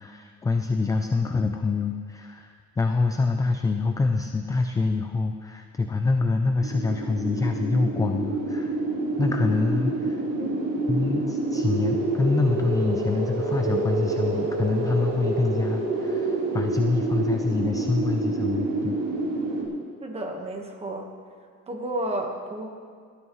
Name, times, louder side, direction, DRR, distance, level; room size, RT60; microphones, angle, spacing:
voice 1, 0.0-8.8 9.2-10.2 10.9-19.0, left 3 dB, 10° left, 5 dB, 0.3 m, -26 dB
sound 1, 6.6-19.6, right 2 dB, 90° right, 3.5 m, -28 dB
voice 2, 20.0-21.1 21.7-22.7, right 1 dB, 20° right, 2 dB, 1.3 m, -31 dB
17.5 x 13.0 x 3.1 m, 2.1 s
cardioid pair, 170°, 31 cm